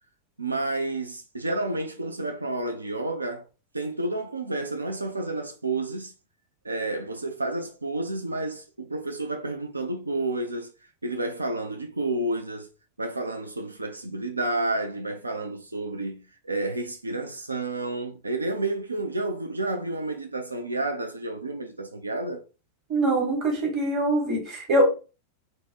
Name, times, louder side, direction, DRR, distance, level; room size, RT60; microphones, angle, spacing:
voice 1, 0.4-3.5 3.7-6.1 6.6-12.7 13.0-22.4, right 2 dB, 80° right, 0.3 m, -30 dB
voice 2, 22.9-24.9, right 1 dB, 35° right, 1.2 m, -23 dB
3.1 x 2.0 x 2.8 m
figure-of-eight pair, 90°, 0 cm